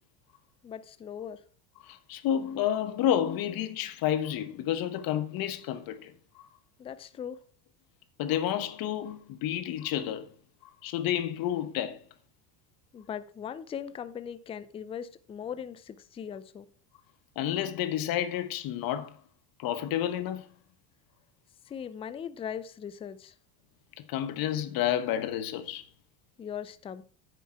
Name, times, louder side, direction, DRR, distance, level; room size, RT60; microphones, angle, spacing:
voice 1, 0.6-1.4 6.8-7.4 12.9-16.7 21.7-23.3 26.4-27.0, left 8 dB, 15° left, 0.4 m, -39 dB
voice 2, 1.8-6.5 8.2-10.3 10.8-12.0 17.3-19.1 19.6-20.4 24.1-25.8, left 11 dB, 55° left, 1.3 m, -30 dB
8.6 x 6.9 x 4.6 m
supercardioid pair, 125°, 43 cm